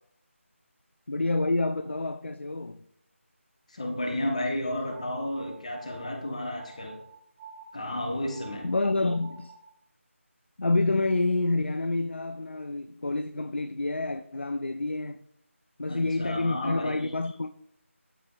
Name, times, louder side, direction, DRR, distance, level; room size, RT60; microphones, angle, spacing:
voice 1, 1.1-2.8 8.6-9.5 10.6-15.2 15.8-17.6, left 2 dB, 55° left, 0.4 m, -28 dB
voice 2, 3.7-7.0 7.7-8.7 15.9-17.0, left 1 dB, 30° left, 1.0 m, -32 dB
sound 1, 4.8-9.7, right 5 dB, 20° right, 2.2 m, -50 dB
13.0 x 4.4 x 2.5 m
figure-of-eight pair, 165°, 7 cm